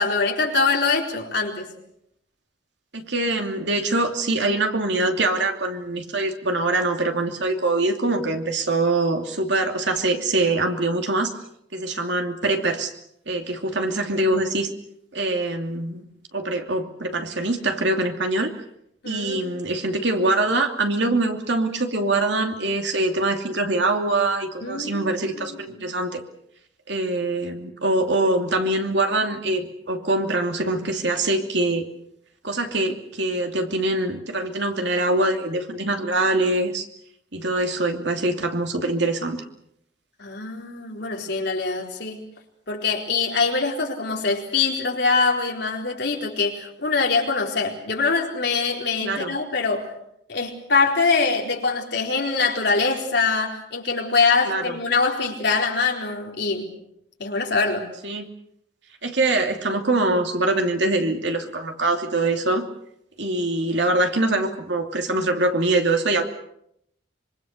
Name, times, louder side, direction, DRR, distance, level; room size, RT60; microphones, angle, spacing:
voice 1, 0.0-1.7 19.0-19.7 24.6-25.1 25.4-25.9 40.2-42.3 42.7-49.9 50.3-56.7 57.2-57.9, left 4 dB, 55° left, 1 dB, 4.3 m, -23 dB
voice 2, 2.9-11.3 11.7-12.9 13.3-14.7 15.1-16.0 16.3-18.5 19.0-26.2 26.9-31.8 32.4-36.9 37.3-39.4 49.0-49.3 54.4-54.8 58.0-58.3 59.0-62.6 63.2-66.2, right 2 dB, 60° right, 4 dB, 2.8 m, -23 dB
25.5 x 24.0 x 6.6 m, 0.76 s
head